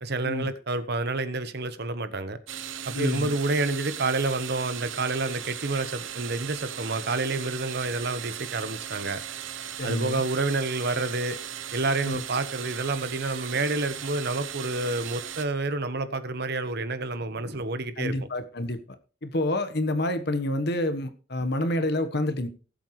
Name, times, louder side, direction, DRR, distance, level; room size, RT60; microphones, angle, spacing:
voice 1, 0.0-2.4 2.8-9.2 9.8-11.4 11.7-18.1, right 2 dB, 60° right, 1.2 m, -29 dB
sound 1, 2.5-15.4, right 10 dB, 85° right, 1.0 m, -37 dB
voice 2, 2.9-3.3 9.8-10.2 12.0-12.2 18.0-18.8 19.2-22.5, left 1 dB, 60° left, 1.4 m, -28 dB
19.0 x 8.0 x 3.2 m
head